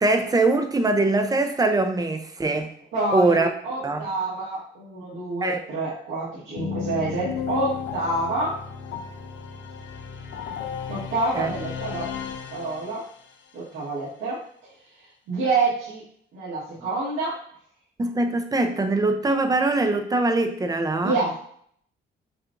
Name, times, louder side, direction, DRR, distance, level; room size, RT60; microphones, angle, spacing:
voice 1, 0.0-2.7 3.1-3.5 3.8-4.0 5.4-5.6 11.4-11.5 18.0-21.2, right 2 dB, 20° right, 6 dB, 0.5 m, -22 dB
voice 2, 2.9-8.5 10.9-12.1 12.5-13.0 13.5-14.4 15.3-16.0 16.3-17.4 21.0-21.4, right 2 dB, 85° right, -10 dB, 1.4 m, -27 dB
sound 1, 6.6-13.3, left 7 dB, 70° left, 0.6 m, -34 dB
5.6 x 2.4 x 2.5 m, 0.62 s
cardioid pair, 90°, 20 cm